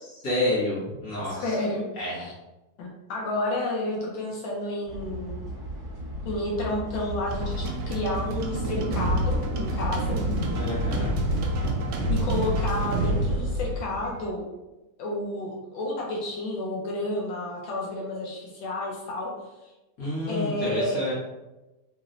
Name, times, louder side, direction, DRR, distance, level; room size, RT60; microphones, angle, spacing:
voice 1, 0.1-1.6 2.0-2.3 10.5-11.1 20.0-21.1, left 1 dB, 45° left, -8 dB, 1.7 m, -29 dB
voice 2, 1.4-2.3 2.8-5.4 6.2-10.2 12.1-14.5 15.0-19.3 19.6-19.7 20.3-21.0, left 1 dB, 75° left, -2 dB, 1.4 m, -31 dB
sound 1, 4.9-14.3, equal, 45° right, 1.6 m, -32 dB
sound 2, 7.3-13.8, right 2 dB, 70° right, 1.0 m, -29 dB
4.2 x 2.9 x 2.5 m, 1.0 s
omnidirectional pair, 2.3 m